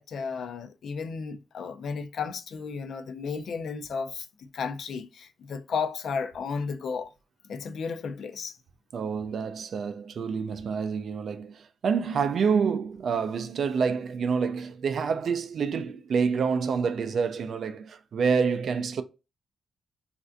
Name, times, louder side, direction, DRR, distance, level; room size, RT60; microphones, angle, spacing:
voice 1, 0.0-4.3 4.5-7.1 7.5-8.5, left 5 dB, 55° left, 0.4 m, -33 dB
voice 2, 8.9-19.0, right 6 dB, 50° right, 0.3 m, -27 dB
3.2 x 2.5 x 2.5 m
wide cardioid pair, 180°, 0 cm